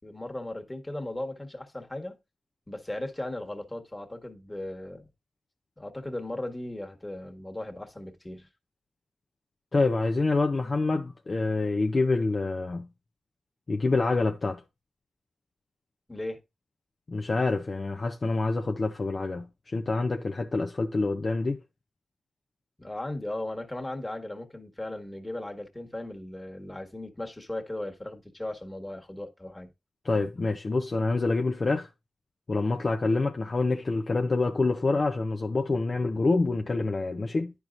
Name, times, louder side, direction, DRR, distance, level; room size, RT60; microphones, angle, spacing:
voice 1, 0.0-2.2 2.7-5.1 5.8-8.5 16.1-16.4 22.8-29.7, left 1 dB, 20° left, 1.6 m, -37 dB
voice 2, 9.7-12.9 13.7-14.6 17.1-21.6 30.0-31.9 32.5-37.5, left 3 dB, 45° left, 0.7 m, -26 dB
10.5 x 4.7 x 2.5 m
supercardioid pair, 40°, 0 cm